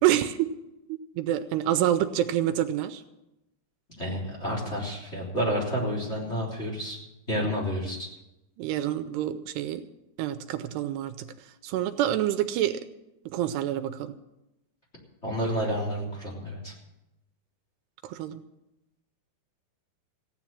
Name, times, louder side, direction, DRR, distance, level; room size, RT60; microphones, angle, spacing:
voice 1, 0.0-0.5 1.2-3.0 8.6-9.8 10.2-11.3 11.6-12.8 13.3-14.1 18.0-18.4, right 12 dB, 80° right, 11 dB, 2.7 m, -27 dB
voice 2, 4.0-7.0 7.3-8.1 15.2-16.7, equal, 15° left, -2 dB, 3.3 m, -30 dB
16.0 x 9.9 x 7.4 m, 0.92 s
omnidirectional pair, 4.8 m